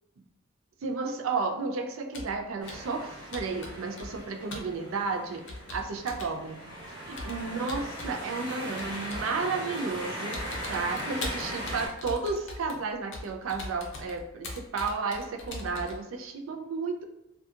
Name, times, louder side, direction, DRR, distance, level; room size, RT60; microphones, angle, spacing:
voice 1, 0.8-6.6 7.1-10.4 10.7-17.0, right 4 dB, 90° right, 4 dB, 0.4 m, -32 dB
Computer keyboard, 2.1-2.4 2.7-3.0 3.3-4.2 4.5-4.7 5.5-6.4 7.2-8.2 8.8-9.3 9.8-10.0 10.3-16.0, left 2 dB, 65° left, 0.6 m, -41 dB
sound 1, 2.6-11.9, equal, 25° right, 1.4 m, -39 dB
2.6 x 2.3 x 2.4 m, 0.93 s
head